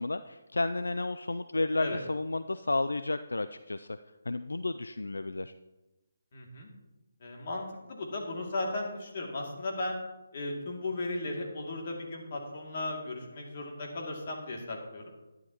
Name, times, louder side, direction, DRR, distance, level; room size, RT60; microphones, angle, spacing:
voice 1, 0.0-4.0 4.3-5.5, left 2 dB, 80° left, 12 dB, 0.4 m, -32 dB
voice 2, 6.3-6.7 7.2-10.0 10.3-15.1, left 2 dB, 45° left, 0 dB, 2.5 m, -36 dB
12.5 x 10.5 x 3.0 m, 1.1 s
figure-of-eight pair, 150°, 0 cm